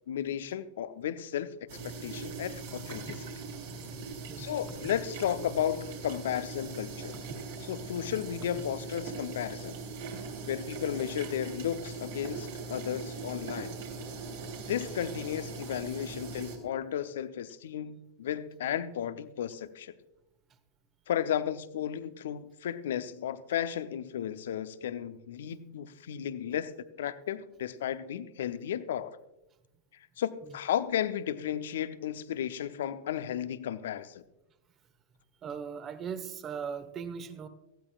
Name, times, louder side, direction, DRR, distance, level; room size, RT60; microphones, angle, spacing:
voice 1, 0.1-3.2 4.4-7.2 7.6-9.8 10.5-13.8 14.6-19.9 21.1-26.7 27.0-29.2 29.9-34.2, left 10 dB, 65° left, 13 dB, 0.7 m, -34 dB
sound 1, 1.7-16.6, right 4 dB, 65° right, 3.3 m, -41 dB
voice 2, 35.4-37.5, right 6 dB, 30° right, 11 dB, 1.2 m, -38 dB
18.5 x 15.0 x 2.4 m, 0.93 s
figure-of-eight pair, 90°, 0 cm